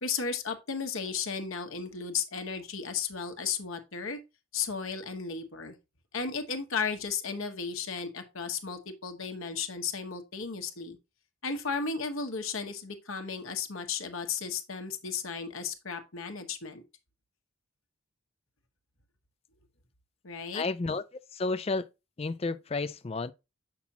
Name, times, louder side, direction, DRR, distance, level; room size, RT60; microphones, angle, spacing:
voice 1, 0.0-4.2 4.5-5.8 6.1-11.0 11.4-16.8 20.2-20.6, left 5 dB, 80° left, 1.2 m, -34 dB
voice 2, 20.5-21.0 21.3-21.9 22.2-23.3, left 3 dB, 30° left, 0.4 m, -31 dB
7.2 x 5.9 x 2.8 m
head